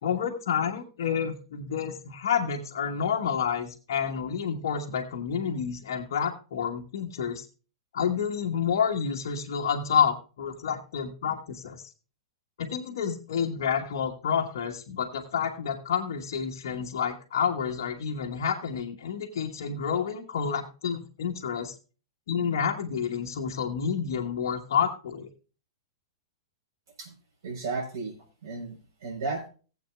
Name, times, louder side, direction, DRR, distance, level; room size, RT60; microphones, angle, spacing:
voice 1, 0.0-7.4 7.9-11.9 12.6-21.7 22.3-25.3, left 7 dB, 60° left, 0 dB, 1.4 m, -29 dB
voice 2, 27.4-28.2 28.4-29.5, right 3 dB, 60° right, -3 dB, 4.2 m, -34 dB
18.5 x 8.0 x 2.3 m, 0.35 s
figure-of-eight pair, 105°, 2 cm